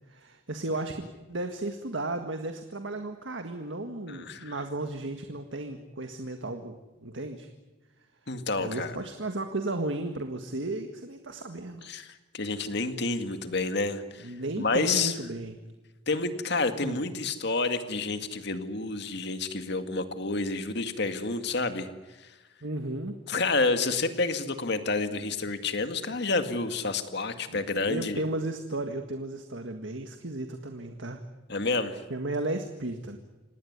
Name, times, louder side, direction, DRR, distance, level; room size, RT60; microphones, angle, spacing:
voice 1, 0.1-1.0 1.3-6.8 7.0-7.5 8.6-11.9 14.2-15.5 16.8-17.0 22.6-23.2 27.5-27.6 27.9-31.2 32.1-33.2, right 2 dB, 75° right, 6 dB, 1.8 m, -34 dB
voice 2, 4.1-4.6 8.3-9.0 11.8-15.1 16.1-21.9 22.2-22.3 23.3-28.2 31.5-32.0, left 3 dB, 60° left, 8 dB, 2.1 m, -29 dB
26.5 x 19.0 x 9.6 m, 1.1 s
head